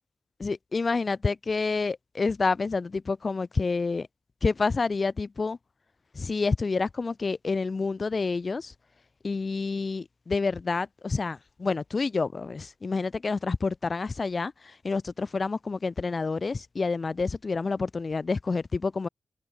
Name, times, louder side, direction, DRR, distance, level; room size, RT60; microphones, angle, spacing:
voice 1, 0.4-4.1 4.4-5.6 6.1-8.7 9.2-19.1, left 4 dB, 40° left, 2.6 m, -28 dB
wide cardioid pair, 105°, 0 cm